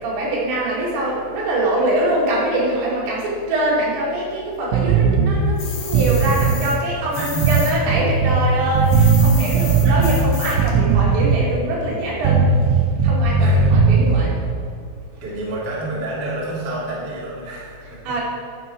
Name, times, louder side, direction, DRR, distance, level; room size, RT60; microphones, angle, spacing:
voice 1, 0.0-12.5 13.0-14.3 18.1-18.2, right 1 dB, 65° right, -5 dB, 4.2 m, -23 dB
sound 1, 4.7-5.4 5.9-6.6 7.4-8.4 8.7-10.2 10.6-11.5 12.2-14.3, right 5 dB, 80° right, 3.1 m, -17 dB
sound 2, 5.6-7.7 8.0-10.7, left 5 dB, 90° left, 1.6 m, -32 dB
voice 2, 7.1-7.6 9.6-10.1 13.4-13.7 15.2-18.0, right 2 dB, 35° right, -6 dB, 1.7 m, -29 dB
12.5 x 7.2 x 4.6 m, 2.2 s
omnidirectional pair, 5.8 m